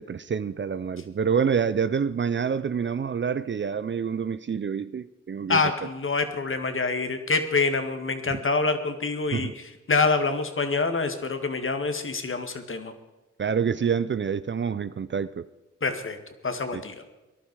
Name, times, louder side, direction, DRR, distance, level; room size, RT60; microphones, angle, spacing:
voice 1, 0.0-5.6 8.3-8.4 9.3-9.5 13.4-15.4 16.7-16.8, right 6 dB, 40° right, 15 dB, 0.6 m, -27 dB
voice 2, 5.5-9.6 9.9-12.9 15.8-16.2 16.4-17.0, left 4 dB, 40° left, 8 dB, 2.0 m, -26 dB
18.5 x 11.5 x 4.8 m, 1.1 s
supercardioid pair, 50°, 30 cm